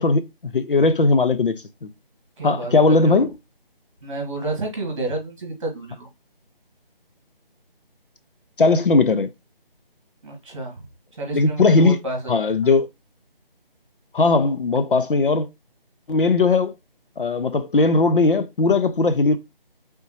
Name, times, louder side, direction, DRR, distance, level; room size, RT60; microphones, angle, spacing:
voice 1, 0.0-1.9 2.4-3.3 8.6-9.3 11.3-12.0 12.3-12.9 14.1-15.5 16.1-16.7 17.2-19.4, left 3 dB, 65° left, 0.6 m, -18 dB
voice 2, 2.4-3.2 4.0-6.1 10.2-10.8 11.2-12.2 12.6-12.7, right 2 dB, 35° right, 1.6 m, -30 dB
4.0 x 3.5 x 2.9 m
figure-of-eight pair, 165°, 29 cm